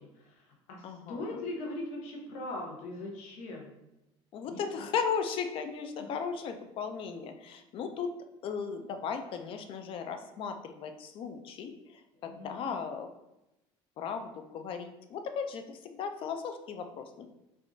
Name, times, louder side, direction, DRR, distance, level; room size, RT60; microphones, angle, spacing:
voice 1, 0.0-3.7 4.5-4.9 12.2-12.7, left 2 dB, 85° left, 0 dB, 0.8 m, -40 dB
voice 2, 0.8-1.4 4.3-8.1 8.4-13.1 14.0-17.3, left 6 dB, 50° left, 7 dB, 0.4 m, -36 dB
3.4 x 2.4 x 2.6 m, 0.92 s
cardioid pair, 130°, 12 cm